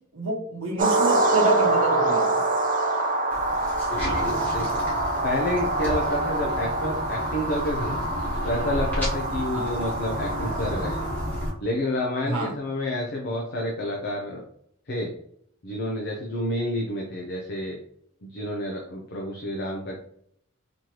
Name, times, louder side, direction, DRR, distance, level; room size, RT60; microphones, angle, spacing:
voice 1, 0.0-2.3 9.5-9.6 12.2-12.5, right 2 dB, 65° right, -1 dB, 1.0 m, -28 dB
sound 1, 0.8-11.5, right 2 dB, 40° right, 0.5 m, -25 dB
sound 2, 3.3-11.5, equal, 10° left, 1.3 m, -32 dB
voice 2, 4.5-8.0 8.4-11.0 11.6-14.4 14.9-15.1 15.6-17.8 18.2-20.0, left 1 dB, 50° left, -1 dB, 0.7 m, -29 dB
4.2 x 3.1 x 2.9 m, 0.68 s
head